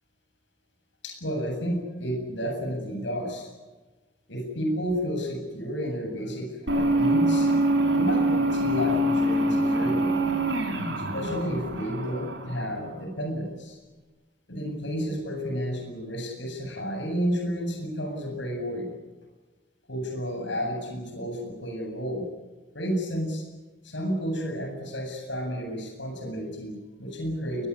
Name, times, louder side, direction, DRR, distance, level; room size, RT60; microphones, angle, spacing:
voice 1, 1.0-3.5 4.3-7.5 7.9-10.2 11.0-13.8 14.5-18.9 19.9-22.2 22.7-23.4 23.8-27.7, equal, 65° left, 2 dB, 8.0 m, -31 dB
sound 1, 6.7-13.0, right 1 dB, 65° right, 4.9 m, -25 dB
21.5 x 21.5 x 9.9 m, 1.2 s
head